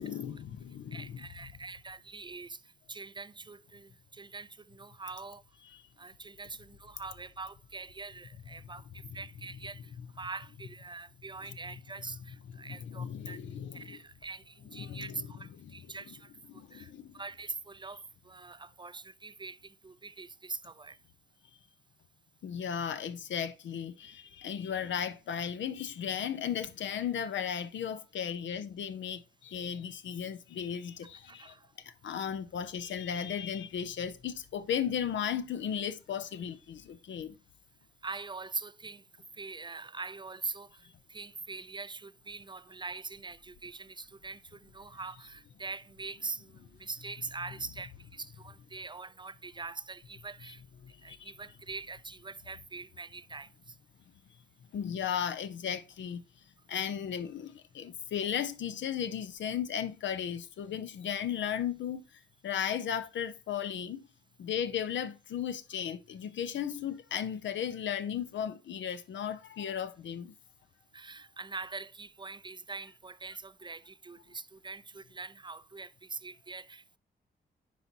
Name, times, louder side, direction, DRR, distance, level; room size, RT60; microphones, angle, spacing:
voice 1, 0.0-1.3 5.7-5.8 12.6-14.0 14.7-15.3 15.6-15.8 16.5-17.2 22.4-37.4 50.8-51.3 54.7-56.2 56.7-62.0 62.4-64.0 64.4-70.3, left 8 dB, 80° left, 0.6 m, -35 dB
voice 2, 0.9-2.6 2.9-5.4 6.0-9.9 10.2-13.4 13.7-16.3 16.7-21.0 31.3-31.7 38.0-39.0 39.4-50.6 51.0-53.7 70.9-77.0, right 4 dB, 25° right, 0.4 m, -43 dB
10.5 x 4.0 x 2.8 m
cardioid pair, 50°, 19 cm